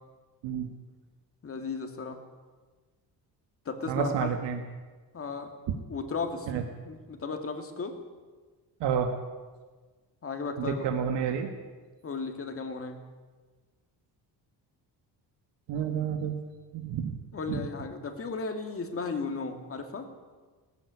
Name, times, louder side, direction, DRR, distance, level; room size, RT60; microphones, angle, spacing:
voice 1, 1.4-2.2 3.6-4.3 5.1-5.5 5.9-6.5 6.8-8.0 10.2-10.9 12.0-13.0 17.3-20.1, left 4 dB, 35° left, 5 dB, 2.7 m, -35 dB
voice 2, 3.9-4.6 6.5-6.6 8.8-9.1 10.6-11.5 15.7-16.4 16.7-17.2 17.5-17.7, right 7 dB, 90° right, 5 dB, 1.9 m, -29 dB
19.5 x 15.0 x 9.9 m, 1.4 s
cardioid pair, 140°, 41 cm